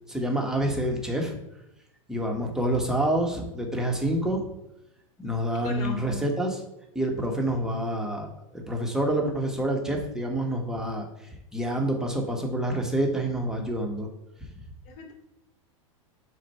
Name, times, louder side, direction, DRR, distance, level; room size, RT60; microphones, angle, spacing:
voice 1, 0.1-1.4 2.1-4.4 5.2-6.6 6.9-8.3 8.5-11.1 11.5-14.1, right 1 dB, 5° right, 1 dB, 1.3 m, -27 dB
voice 2, 5.6-6.2 14.9-15.1, left 6 dB, 50° left, 0 dB, 2.1 m, -36 dB
7.5 x 2.5 x 5.5 m, 0.86 s
hypercardioid pair, 120°, 17 cm